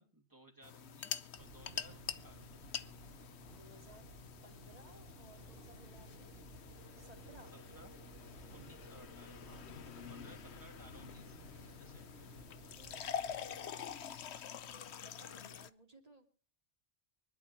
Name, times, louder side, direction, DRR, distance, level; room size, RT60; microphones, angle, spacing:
voice 1, 0.0-2.4 7.7-7.9 8.5-11.4 11.8-12.1, right 1 dB, 15° right, 3 dB, 2.6 m, -60 dB
sound 1, 0.6-15.7, left 8 dB, 70° left, 1.0 m, -47 dB
sound 2, 1.4-13.6, right 5 dB, 60° right, 1.2 m, -57 dB
voice 2, 3.5-4.1 4.4-6.3 7.0-7.6 12.7-16.3, right 1 dB, 35° right, 3 dB, 2.7 m, -61 dB
24.0 x 11.5 x 3.0 m, 0.42 s
omnidirectional pair, 1.2 m